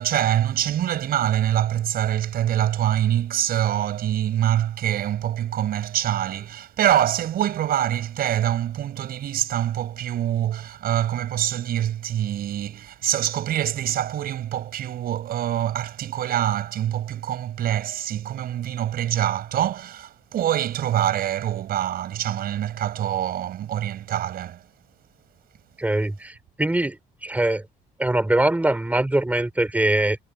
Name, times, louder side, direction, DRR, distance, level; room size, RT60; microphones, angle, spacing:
voice 1, 0.0-24.6, right 11 dB, 65° right, 6.1 m, -25 dB
voice 2, 25.8-27.6 28.0-30.2, right 1 dB, 10° right, 5.7 m, -22 dB
cardioid pair, 110°, 17 cm